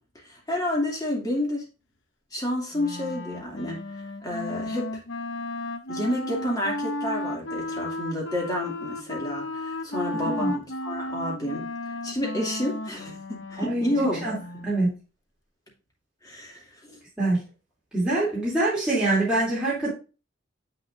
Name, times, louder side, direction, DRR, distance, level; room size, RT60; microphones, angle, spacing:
voice 1, 0.2-1.6 2.3-3.8 4.2-4.9 5.9-11.6 12.0-14.2 16.2-17.0, left 1 dB, 20° left, -3 dB, 2.5 m, -30 dB
Wind instrument woodwind instrument, 2.7-14.8, left 1 dB, 75° left, 0.9 m, -34 dB
voice 2, 10.1-10.5 13.6-13.9 14.2-14.3 14.6-14.9 17.2-17.4 17.9-19.9, right 2 dB, 5° right, -9 dB, 2.8 m, -24 dB
7.5 x 6.6 x 2.5 m, 0.32 s
head